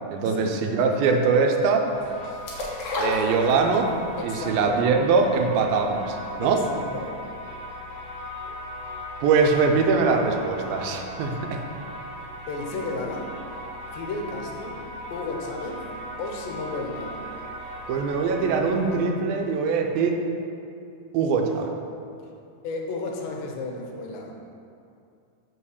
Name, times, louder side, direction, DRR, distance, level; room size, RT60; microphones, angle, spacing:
voice 1, 0.1-1.8 3.0-3.9 4.2-6.6 9.2-11.6 12.7-12.9 17.9-20.2 21.1-21.7, right 4 dB, 85° right, 3 dB, 2.5 m, -22 dB
sound 1, 1.8-19.0, equal, 40° left, 1.0 m, -38 dB
sound 2, 2.5-4.0 4.4-4.5, left 2 dB, 60° left, 2.1 m, -29 dB
voice 2, 4.2-4.8 6.4-7.2 12.5-13.4 13.9-14.8 15.1-15.9 16.2-17.2 22.6-24.4, left 3 dB, 80° left, 1 dB, 2.6 m, -33 dB
5.8 x 5.5 x 6.4 m, 2.6 s
omnidirectional pair, 4.1 m